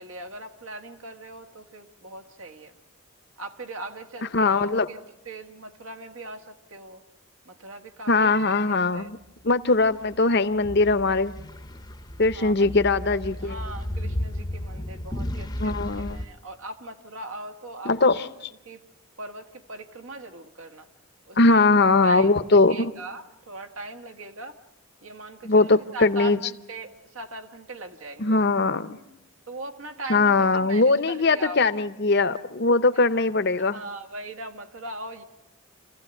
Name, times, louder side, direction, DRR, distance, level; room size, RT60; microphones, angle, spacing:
voice 1, 0.0-2.8 3.4-5.0 5.3-7.0 7.5-8.3 8.7-9.1 12.3-12.7 13.4-18.2 18.7-18.8 19.2-20.9 21.3-21.7 22.0-22.3 22.7-24.6 25.0-28.4 29.5-31.7 32.9-33.0 33.6-35.2, right 2 dB, 75° right, 1.7 m, -40 dB
voice 2, 4.3-4.9 8.1-9.2 9.4-11.3 12.2-13.6 15.6-16.2 17.8-18.3 21.4-22.9 25.4-26.4 28.2-29.0 30.1-33.8, left 3 dB, 50° left, 0.8 m, -21 dB
sound 1, 9.8-16.3, left 1 dB, 20° left, 0.7 m, -34 dB
28.0 x 15.5 x 9.0 m
head